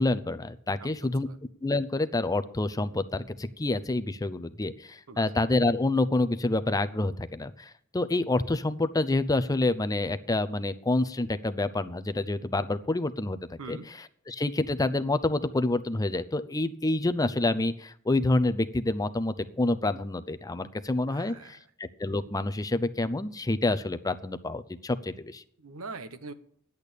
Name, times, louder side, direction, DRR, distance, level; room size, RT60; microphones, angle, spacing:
voice 1, 0.0-1.3 1.6-25.4, left 2 dB, 15° left, 11 dB, 0.5 m, -28 dB
voice 2, 21.1-21.6 25.6-26.3, right 3 dB, 75° right, 12 dB, 0.9 m, -42 dB
10.5 x 8.3 x 6.8 m, 0.62 s
head